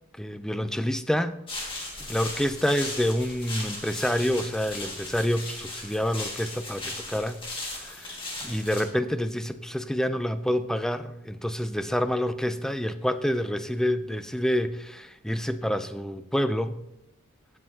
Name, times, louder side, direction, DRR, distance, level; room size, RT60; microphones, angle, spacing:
voice 1, 0.2-1.4 1.7-16.8, equal, ahead, 11 dB, 0.3 m, -28 dB
sound 1, 1.5-8.8, left 2 dB, 25° left, 1.8 m, -37 dB
15.0 x 7.5 x 2.8 m, 0.88 s
head